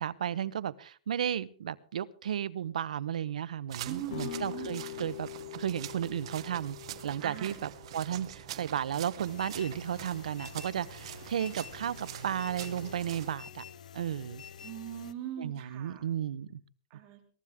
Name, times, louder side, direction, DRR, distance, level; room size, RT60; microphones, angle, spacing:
voice 1, 0.0-5.3 5.5-6.8 7.0-13.6 13.9-14.4 15.4-16.6, right 9 dB, 75° right, 17 dB, 0.8 m, -34 dB
sound 1, 3.7-13.3, right 12 dB, 45° right, 1.0 m, -45 dB
voice 2, 3.8-4.7 7.2-7.6 14.6-16.0 16.9-17.2, right 11 dB, 30° right, 5 dB, 2.8 m, -41 dB
sound 2, 4.1-9.8, left 15 dB, 55° left, 1.4 m, -45 dB
sound 3, 9.2-15.1, left 8 dB, 80° left, 0.8 m, -48 dB
22.5 x 12.5 x 3.6 m, 0.42 s
hypercardioid pair, 165°, 4 cm